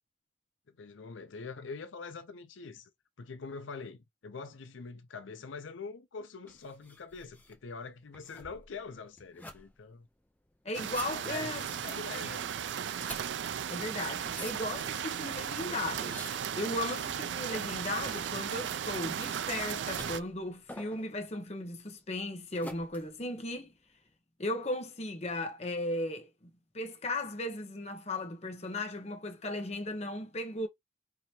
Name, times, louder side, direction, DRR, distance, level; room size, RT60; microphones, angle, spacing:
voice 1, 0.8-2.9 3.2-10.1 11.2-12.4, left 4 dB, 85° left, 0.6 m, -44 dB
sound 1, 6.5-24.1, left 2 dB, 10° left, 0.5 m, -51 dB
voice 2, 10.6-12.5 13.7-16.2 16.5-23.7 24.4-26.3 26.7-30.7, left 1 dB, 35° left, 0.9 m, -36 dB
sound 2, 10.7-20.2, right 8 dB, 70° right, 0.4 m, -36 dB
4.8 x 2.8 x 2.8 m
head